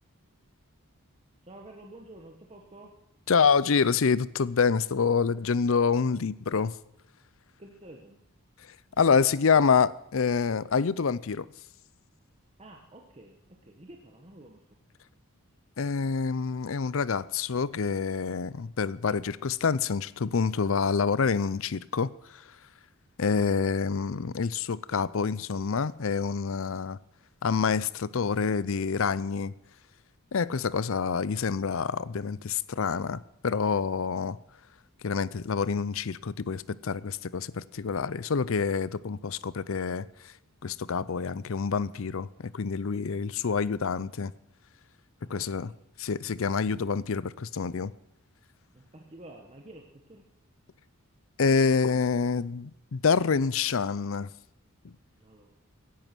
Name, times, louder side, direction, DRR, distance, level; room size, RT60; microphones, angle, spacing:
voice 1, 1.4-3.0 7.6-8.2 12.6-14.6 45.2-45.8 48.7-50.3 55.2-55.6, right 1 dB, 30° right, 1.4 m, -50 dB
voice 2, 3.3-6.8 9.0-11.5 15.8-22.4 23.2-27.0 27.4-29.5 30.3-34.4 35.0-40.3 40.6-44.3 45.3-45.7 46.0-47.9 51.4-54.3 54.8-54.9, left 5 dB, 60° left, 0.5 m, -27 dB
16.5 x 10.5 x 6.2 m
head